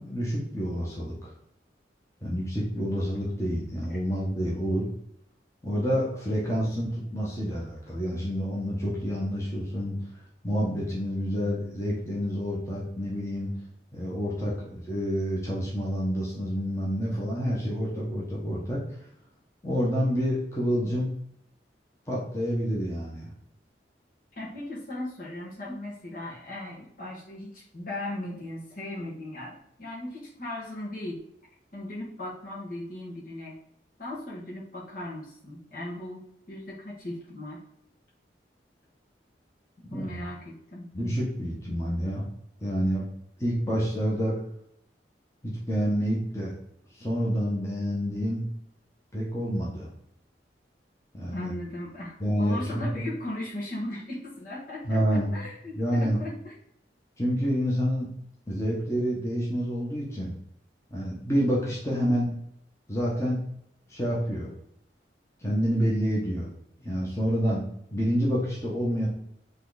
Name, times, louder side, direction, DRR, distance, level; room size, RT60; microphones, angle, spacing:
voice 1, 0.0-1.3 2.2-4.8 5.6-10.0 10.4-13.5 13.9-18.8 19.6-21.1 22.1-23.3 39.8-40.2 40.9-42.2 42.6-43.0 43.4-44.4 45.4-46.5 47.0-48.4 49.1-49.9 51.1-51.5 52.2-52.8 54.8-55.3 55.8-56.2 57.2-58.1 58.5-60.3 60.9-62.3 62.9-63.4 63.9-64.5 65.4-66.5 66.8-69.1, equal, 15° left, -5 dB, 1.4 m, -28 dB
voice 2, 24.3-31.2 31.7-33.6 34.0-37.6 39.9-40.9 51.3-56.6, left 1 dB, 50° left, -5 dB, 2.0 m, -37 dB
7.4 x 3.5 x 4.2 m, 0.74 s
head